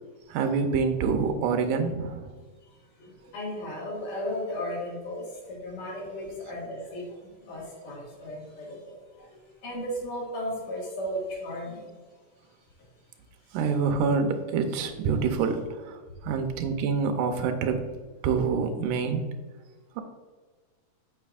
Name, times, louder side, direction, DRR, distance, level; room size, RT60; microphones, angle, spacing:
voice 1, 0.3-2.3 13.5-17.8 18.2-19.3 20.0-20.1, right 5 dB, 80° right, 6 dB, 2.2 m, -26 dB
voice 2, 3.0-7.0 7.4-11.9, equal, 70° left, -4 dB, 3.3 m, -35 dB
8.6 x 6.8 x 2.4 m, 1.4 s
omnidirectional pair, 3.8 m